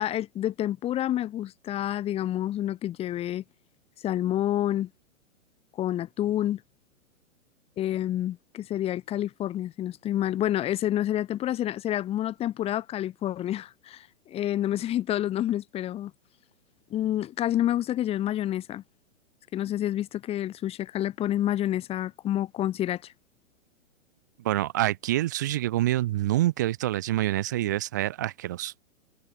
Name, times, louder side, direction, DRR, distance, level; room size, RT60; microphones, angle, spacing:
voice 1, 0.0-3.4 4.0-4.9 5.8-6.6 7.8-16.1 16.9-18.8 19.5-23.1, left 12 dB, 15° left, 1.3 m, -28 dB
voice 2, 24.4-28.7, right 14 dB, 15° right, 0.4 m, -26 dB
hypercardioid pair, 150°, 39 cm